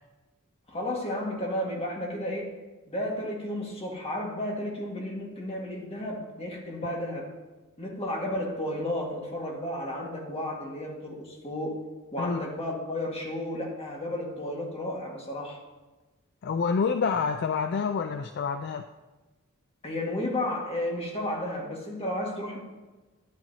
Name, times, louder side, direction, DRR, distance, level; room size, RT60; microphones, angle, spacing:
voice 1, 0.7-2.6 2.9-7.3 7.8-11.8 12.1-15.6 19.8-22.6, left 1 dB, 30° left, -1 dB, 1.7 m, -33 dB
voice 2, 16.4-18.8, left 5 dB, 50° left, 8 dB, 0.4 m, -28 dB
12.0 x 10.5 x 2.8 m, 1.2 s
head